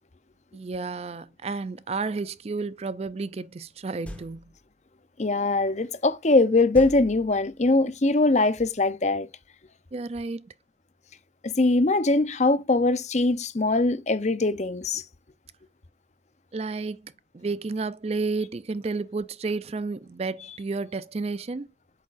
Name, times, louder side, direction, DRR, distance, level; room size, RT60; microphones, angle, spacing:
voice 1, 0.5-4.5 9.9-10.5 16.5-21.7, right 3 dB, 35° right, 0.4 m, -31 dB
sound 1, 4.0-4.7 6.7-7.8, equal, 5° left, 1.4 m, -42 dB
voice 2, 5.2-9.3 11.4-15.0, left 2 dB, 40° left, 0.7 m, -22 dB
8.4 x 6.7 x 2.5 m
head